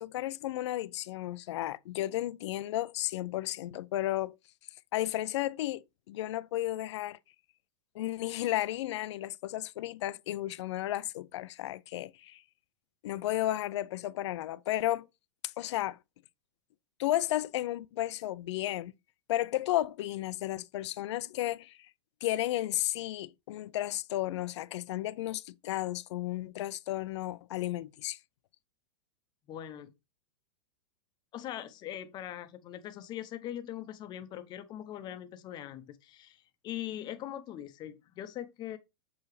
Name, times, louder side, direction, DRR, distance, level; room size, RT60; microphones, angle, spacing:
voice 1, 0.0-4.3 4.9-7.2 7.9-12.4 13.0-15.1 15.6-16.0 17.0-18.9 19.3-21.8 22.2-28.2, left 14 dB, 65° left, 0.6 m, -33 dB
voice 2, 29.5-29.9 31.3-38.8, left 11 dB, 30° left, 0.9 m, -41 dB
7.2 x 4.7 x 3.2 m
supercardioid pair, 150°, 15 cm